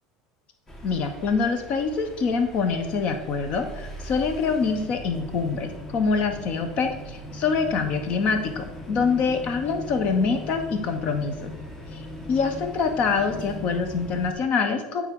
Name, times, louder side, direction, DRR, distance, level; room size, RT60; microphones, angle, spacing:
sound 1, 0.7-14.3, left 1 dB, 20° left, 0.9 m, -39 dB
voice 1, 0.8-11.5 11.9-12.0 12.3-15.1, left 5 dB, 50° left, 7 dB, 0.9 m, -25 dB
9.0 x 3.6 x 3.7 m, 1.0 s
supercardioid pair, 120°, 3 cm